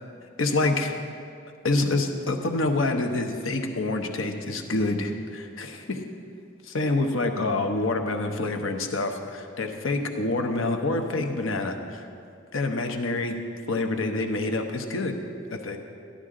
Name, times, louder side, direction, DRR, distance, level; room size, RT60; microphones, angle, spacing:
voice 1, 0.4-0.9 1.6-6.0 6.6-12.0 12.5-13.4 13.7-15.2 15.5-15.8, left 2 dB, 85° left, 5 dB, 0.9 m, -27 dB
13.5 x 11.5 x 3.8 m, 2.3 s
head